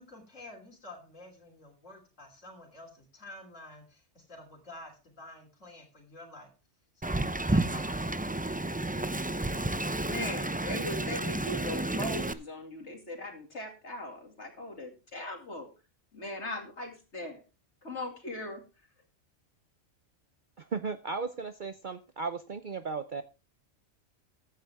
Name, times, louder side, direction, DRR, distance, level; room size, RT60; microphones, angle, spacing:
voice 1, 0.0-6.5 6.9-7.2 7.4-9.0, left 2 dB, 85° left, -1 dB, 3.4 m, -50 dB
Wind, 7.0-12.3, right 2 dB, 15° right, 0.3 m, -31 dB
voice 2, 10.0-15.7 16.1-17.4 17.8-18.6, left 1 dB, 65° left, 3 dB, 2.8 m, -39 dB
voice 3, 20.6-23.2, right 4 dB, 45° right, 10 dB, 0.8 m, -36 dB
15.0 x 9.5 x 3.5 m, 0.32 s
omnidirectional pair, 1.3 m